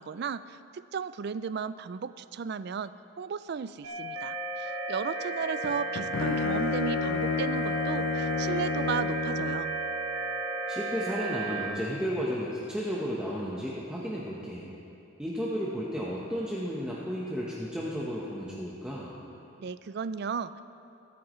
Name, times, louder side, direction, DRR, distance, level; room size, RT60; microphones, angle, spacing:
voice 1, 0.0-9.7 19.6-20.6, right 6 dB, 50° right, 15 dB, 0.3 m, -35 dB
sound 1, 3.8-11.7, right 2 dB, 75° right, 1.6 m, -34 dB
Bowed string instrument, 5.6-9.8, left 5 dB, 70° left, 0.4 m, -31 dB
voice 2, 10.7-14.7 15.2-19.1, equal, 5° right, -7 dB, 1.1 m, -33 dB
24.0 x 9.3 x 3.2 m, 2.8 s
head